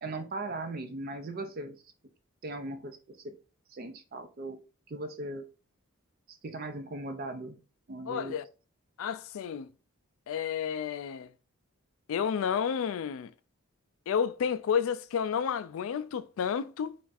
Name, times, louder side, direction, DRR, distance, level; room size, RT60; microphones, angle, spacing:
voice 1, 0.0-1.8 2.4-3.4 3.7-4.6 4.9-5.5 6.3-7.6 7.9-8.4, right 2 dB, 40° right, 0.4 m, -38 dB
voice 2, 8.1-8.5 9.0-9.7 10.3-11.3 12.1-13.3 14.1-17.0, left 7 dB, 70° left, 0.3 m, -31 dB
3.4 x 2.5 x 4.0 m
head